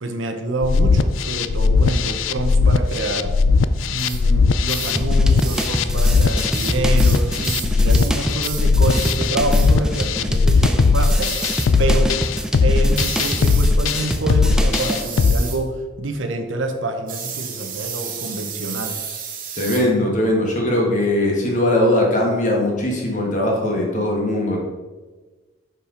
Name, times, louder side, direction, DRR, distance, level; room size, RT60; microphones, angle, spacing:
voice 1, 0.0-3.3 3.9-11.4 11.8-12.2 12.6-19.0, right 2 dB, 70° right, 5 dB, 0.9 m, -27 dB
sound 1, 0.6-15.4, left 4 dB, 75° left, 0.4 m, -18 dB
sound 2, 4.0-4.2 4.7-5.0 5.4-5.7 6.0-8.2 8.4-8.7 8.9-9.2 9.5-9.8 11.0-11.7 12.9-13.7 14.7-15.6 17.1-19.9, right 7 dB, 45° right, 1.0 m, -32 dB
sound 3, 4.9-15.0, equal, 5° right, 0.4 m, -26 dB
voice 2, 19.6-24.6, left 1 dB, 40° left, -1 dB, 1.6 m, -20 dB
6.1 x 5.7 x 5.0 m, 1.3 s
head